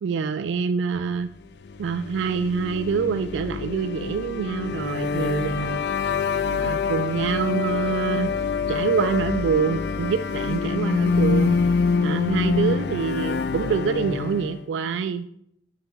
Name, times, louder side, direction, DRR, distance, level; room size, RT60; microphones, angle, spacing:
voice 1, 0.0-1.3 1.8-5.8 6.5-8.3 8.7-11.6 12.0-15.4, right 6 dB, 75° right, 10 dB, 0.3 m, -26 dB
sound 1, 1.6-14.6, left 5 dB, 60° left, 0.4 m, -25 dB
6.7 x 6.5 x 3.5 m, 0.74 s
head